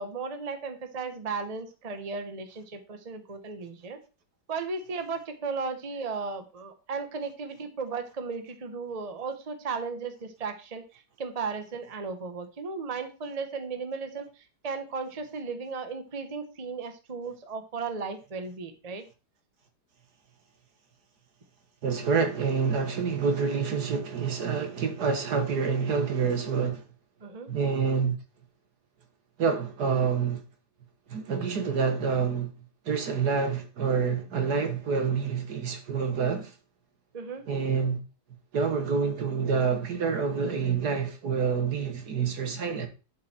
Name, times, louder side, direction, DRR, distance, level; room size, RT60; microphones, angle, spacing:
voice 1, 0.0-4.0 4.5-19.0 27.2-27.5 37.1-37.4, right 4 dB, 25° right, 1.0 m, -35 dB
voice 2, 21.8-26.8 27.5-28.2 29.4-30.4 31.1-32.5 32.9-36.5 37.5-38.0 38.5-42.9, right 5 dB, 65° right, 1.9 m, -27 dB
11.0 x 5.5 x 4.4 m
omnidirectional pair, 1.9 m